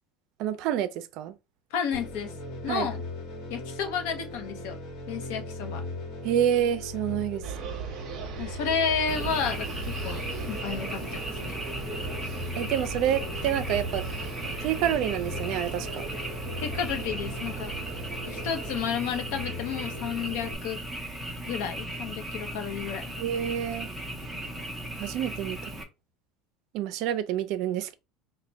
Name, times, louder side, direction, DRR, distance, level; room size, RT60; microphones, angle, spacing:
voice 1, 0.4-1.3 2.7-2.9 6.2-7.4 12.6-14.0 14.6-16.0 23.2-23.9 25.0-25.7 26.7-27.9, right 10 dB, 55° right, 0.5 m, -28 dB
voice 2, 1.7-2.4 2.6-3.0 3.5-4.8 5.1-5.8 8.4-11.6 16.6-17.8 18.3-20.8 21.4-23.1, left 7 dB, 70° left, 0.7 m, -31 dB
sound 1, 1.9-20.6, left 2 dB, 55° left, 1.1 m, -39 dB
sound 2, 7.4-18.8, right 6 dB, 35° right, 0.8 m, -39 dB
Frog, 9.1-25.8, right 1 dB, ahead, 0.6 m, -37 dB
3.3 x 2.2 x 3.9 m
cardioid pair, 165°, 0 cm